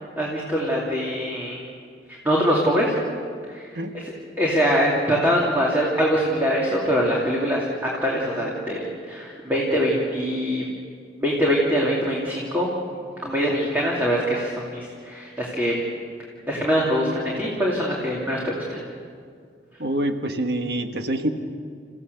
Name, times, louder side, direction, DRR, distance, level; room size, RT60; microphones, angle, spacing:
voice 1, 0.2-1.6 2.2-2.9 3.5-3.7 3.9-7.7 8.0-10.6 11.2-15.7 16.5-18.8, equal, 10° right, -4 dB, 2.7 m, -23 dB
voice 2, 19.8-21.3, right 1 dB, 65° right, 6 dB, 1.5 m, -25 dB
29.0 x 15.5 x 6.9 m, 2.1 s
head